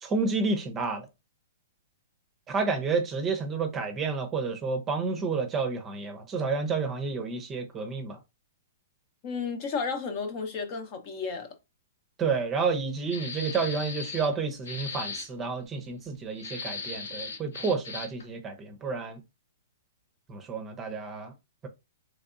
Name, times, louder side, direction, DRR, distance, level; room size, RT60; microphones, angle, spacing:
voice 1, 0.0-1.1 2.5-8.2 12.2-19.2 20.3-21.3, right 4 dB, 20° right, 0.7 m, -30 dB
voice 2, 9.2-11.5, left 5 dB, 40° left, 1.0 m, -32 dB
sound 1, 13.1-14.3 14.6-15.3 16.4-18.2, left 4 dB, 80° left, 1.3 m, -37 dB
3.4 x 3.3 x 2.6 m
hypercardioid pair, 135°, 0 cm